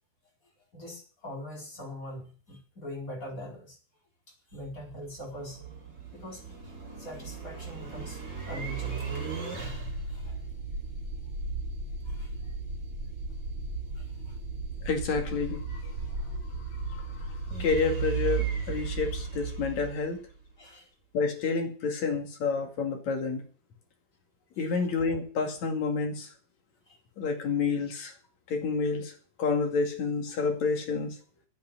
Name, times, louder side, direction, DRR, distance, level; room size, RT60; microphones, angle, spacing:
voice 1, 0.7-3.8 4.5-5.6 6.1-8.2 8.5-9.0 10.1-10.4 12.0-12.5 13.9-14.4 16.1-16.2 20.6-20.9 24.6-24.8 26.9-27.0, left 1 dB, 25° left, 0 dB, 4.7 m, -43 dB
Spaceship starup and shutdown, 4.5-20.5, right 4 dB, 35° right, 4.2 m, -35 dB
voice 2, 14.8-15.9 16.9-20.2 21.1-23.5 24.6-26.3 27.2-28.1 28.5-29.1 29.4-31.2, left 4 dB, 65° left, 4 dB, 3.6 m, -29 dB
10.0 x 8.8 x 8.2 m, 0.41 s
omnidirectional pair, 3.6 m